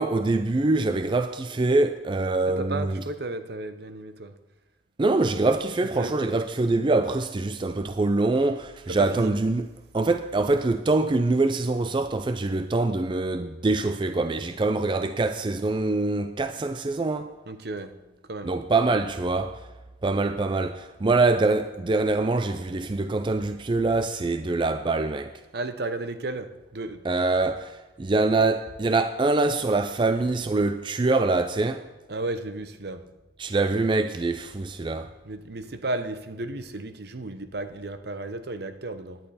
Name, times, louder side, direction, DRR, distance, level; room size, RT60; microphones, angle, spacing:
voice 1, 0.0-3.0 5.0-9.7 9.9-17.3 18.4-19.7 20.0-25.3 27.0-31.9 33.4-35.1, right 3 dB, 25° right, 0.4 m, -24 dB
voice 2, 2.5-4.3 6.0-6.1 8.9-9.3 17.5-17.9 18.3-18.5 25.5-27.0 32.1-33.0 34.9-39.2, right 2 dB, 60° right, 0.8 m, -34 dB
17.0 x 11.0 x 4.2 m
head